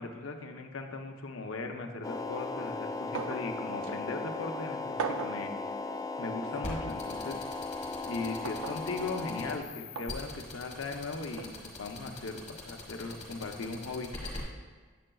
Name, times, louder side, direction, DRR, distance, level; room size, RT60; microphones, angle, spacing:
voice 1, 0.0-5.5 6.2-7.4 8.0-11.5 11.8-14.1, left 3 dB, 75° left, 4 dB, 0.7 m, -38 dB
sound 1, 2.0-9.6, left 3 dB, 15° left, 0.3 m, -37 dB
sound 2, 3.1-3.5 3.8-3.9 5.0-5.4 6.6-6.7 8.4-8.8 10.0-10.1 11.4-11.5, right 5 dB, 70° right, 0.5 m, -37 dB
sound 3, 6.6-14.4, left 3 dB, 35° left, 1.7 m, -42 dB
8.8 x 7.7 x 2.3 m, 1.4 s
head